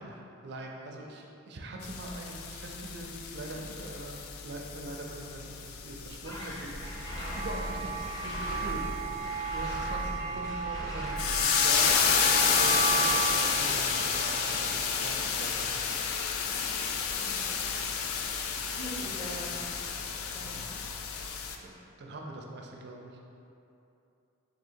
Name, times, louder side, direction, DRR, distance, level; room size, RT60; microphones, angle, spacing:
voice 1, 0.0-6.9 7.1-8.8 9.1-16.0 16.3-16.6 21.6-21.7 22.0-23.2, right 1 dB, 55° right, 0 dB, 0.4 m, -43 dB
sound 1, 1.8-21.6, left 6 dB, 85° left, 0.3 m, -31 dB
sound 2, 6.2-13.0, equal, 15° left, 0.6 m, -40 dB
sound 3, 6.8-15.4, right 5 dB, 60° left, 0.8 m, -35 dB
voice 2, 7.1-7.8 8.2-8.5 17.1-17.4 18.8-19.7 20.3-20.7, equal, 35° left, -11 dB, 1.3 m, -44 dB
3.7 x 2.8 x 4.3 m, 2.8 s
head